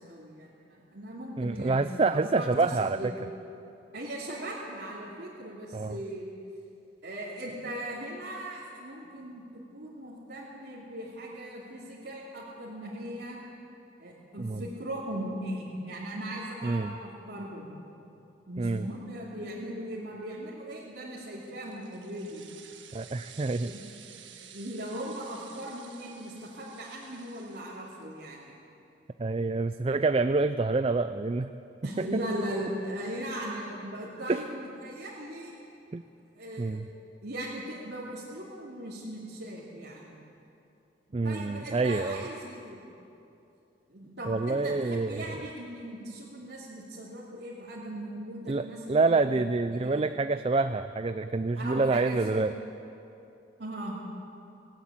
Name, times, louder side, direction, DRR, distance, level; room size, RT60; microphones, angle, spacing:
voice 1, 0.0-3.2 3.9-6.3 7.0-9.5 9.7-13.4 14.0-17.7 18.5-22.4 23.4-23.8 24.1-28.5 31.8-35.6 36.3-36.8 37.2-40.2 41.2-42.9 43.9-49.4 49.7-50.0 51.6-52.5 53.6-54.0, right 1 dB, 60° right, -7 dB, 2.8 m, -39 dB
voice 2, 1.4-3.0 5.7-6.0 14.4-14.6 16.6-16.9 18.6-18.9 22.9-23.7 29.2-31.5 32.0-32.1 34.3-34.4 35.9-36.0 36.6-36.9 41.1-42.2 44.3-45.4 48.5-52.5, right 3 dB, 30° right, 11 dB, 0.4 m, -27 dB
sound 1, 21.2-28.2, right 8 dB, 80° right, 1.7 m, -52 dB
19.0 x 17.5 x 8.7 m, 2.8 s
head